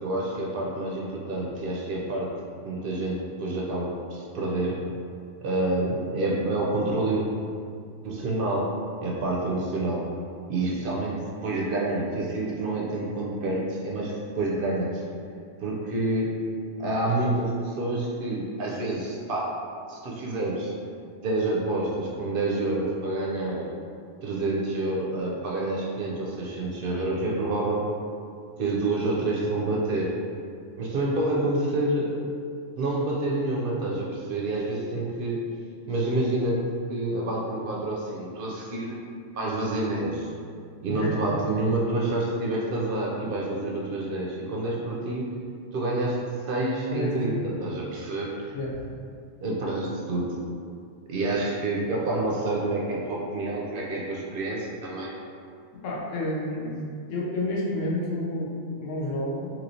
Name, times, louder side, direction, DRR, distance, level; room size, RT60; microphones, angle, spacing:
voice 1, 0.0-2.3 2.6-4.8 5.4-7.2 8.0-8.7 9.0-10.1 10.5-15.0 15.6-16.3 16.8-19.5 19.9-20.7 21.2-23.7 24.2-27.9 28.6-30.2 30.8-32.3 32.8-35.5 35.9-36.6 36.9-39.0 39.3-40.3 40.8-45.3 45.7-46.2 46.5-48.5 49.4-50.3 51.1-55.1, right 2 dB, 60° right, -3 dB, 0.6 m, -28 dB
voice 2, 46.9-47.4 48.5-48.8 55.8-56.8 57.1-59.5, left 1 dB, 80° left, -4 dB, 1.0 m, -30 dB
3.1 x 2.9 x 2.7 m, 2.3 s
omnidirectional pair, 1.3 m